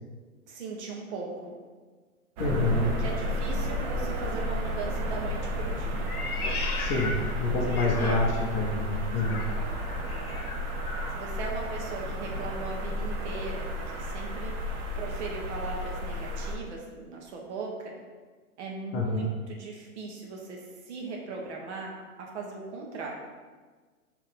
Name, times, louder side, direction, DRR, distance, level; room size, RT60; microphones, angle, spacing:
voice 1, 0.5-1.5 3.0-6.1 7.7-8.2 9.1-9.8 10.1-10.4 11.1-14.5 15.0-17.9 18.6-21.9 22.3-23.1, right 4 dB, 50° right, -1 dB, 1.4 m, -38 dB
voice 2, 2.4-2.9 6.8-7.1 7.4-9.4 18.9-19.3, left 2 dB, 25° left, -2 dB, 0.7 m, -27 dB
sound 1, 2.4-16.6, equal, 25° right, 0.8 m, -32 dB
Meow, 6.0-8.6 9.1-11.2, left 3 dB, 75° left, 1.0 m, -37 dB
5.7 x 3.3 x 5.0 m, 1.4 s
hypercardioid pair, 125°, 45 cm